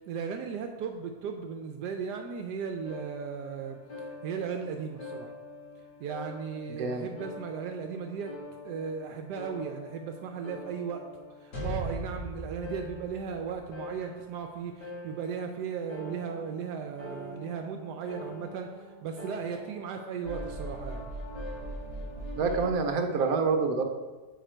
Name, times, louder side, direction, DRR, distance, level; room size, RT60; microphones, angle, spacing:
voice 1, 0.0-5.3 6.0-8.3 8.6-11.1 11.4-21.0, right 6 dB, 80° right, 4 dB, 1.2 m, -36 dB
sound 1, 2.8-22.7, equal, 75° left, 2.6 m, -42 dB
voice 2, 6.8-7.1 22.4-23.8, right 4 dB, 65° right, 4 dB, 1.2 m, -27 dB
7.2 x 5.1 x 4.4 m, 1.2 s
omnidirectional pair, 1.8 m